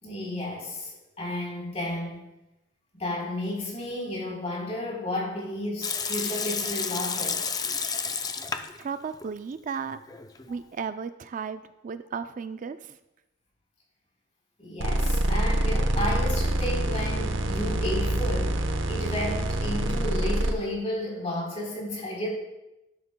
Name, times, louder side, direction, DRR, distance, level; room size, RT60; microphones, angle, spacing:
voice 1, 0.0-0.9 1.2-2.2 2.9-7.5 10.4-10.5 14.6-22.3, left 1 dB, 35° left, -3 dB, 3.6 m, -32 dB
Water tap faucet / Sink (filling or washing) / Liquid, 5.8-8.8 9.1-9.2 9.9-10.5, left 5 dB, 20° left, 0.5 m, -31 dB
voice 2, 8.8-10.0 10.5-13.0, right 6 dB, 45° right, 11 dB, 0.3 m, -35 dB
sound 1, 14.8-20.5, right 1 dB, 85° right, 0.9 m, -26 dB
12.5 x 11.5 x 2.2 m, 0.94 s
head